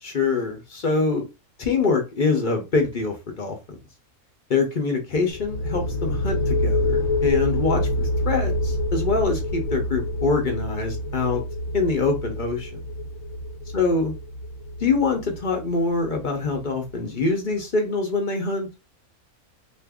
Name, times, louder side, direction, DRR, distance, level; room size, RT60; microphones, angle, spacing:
voice 1, 0.0-1.2 1.6-3.8 4.5-11.4 11.7-12.8 13.7-14.1 14.8-18.8, left 4 dB, 50° left, 3 dB, 0.6 m, -24 dB
sound 1, 5.3-16.8, left 1 dB, 70° left, 0.9 m, -27 dB
2.6 x 2.5 x 3.5 m, 0.26 s
omnidirectional pair, 1.6 m